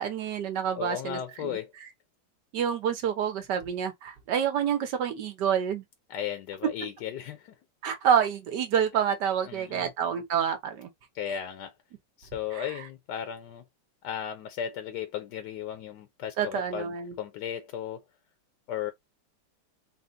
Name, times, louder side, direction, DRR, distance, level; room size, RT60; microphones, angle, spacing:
voice 1, 0.0-1.6 2.5-5.8 7.8-10.9 12.5-12.6 16.4-17.1, right 8 dB, 65° right, 1.5 m, -28 dB
voice 2, 0.8-1.7 6.1-7.5 9.5-9.9 11.1-11.7 12.2-13.6 14.0-18.0 18.7-18.9, left 9 dB, 70° left, 1.1 m, -35 dB
4.2 x 2.3 x 3.8 m
omnidirectional pair, 2.1 m